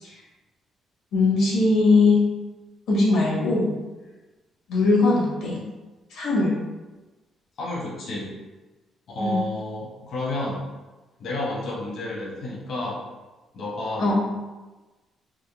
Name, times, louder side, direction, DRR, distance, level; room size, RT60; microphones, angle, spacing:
voice 1, 1.1-2.2 2.9-3.7 4.7-5.6 6.1-6.5 9.2-9.4 14.0-14.1, left 3 dB, 90° left, -4 dB, 1.2 m, -20 dB
voice 2, 7.6-8.3 9.1-10.6 11.2-13.0 13.5-14.1, left 1 dB, 70° left, -4 dB, 1.0 m, -30 dB
3.6 x 2.0 x 3.5 m, 1.2 s
cardioid pair, 90°, 0 cm